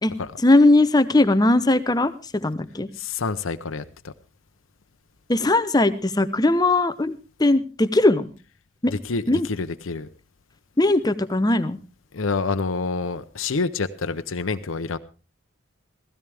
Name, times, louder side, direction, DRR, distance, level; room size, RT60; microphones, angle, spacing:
voice 1, 0.4-2.9 5.3-8.3 8.8-8.9 9.3-9.5 10.8-11.8, left 2 dB, 20° left, 12 dB, 0.8 m, -19 dB
voice 2, 2.9-4.1 8.9-10.1 12.1-15.0, left 4 dB, 80° left, 9 dB, 0.7 m, -27 dB
16.0 x 15.5 x 3.5 m, 0.34 s
head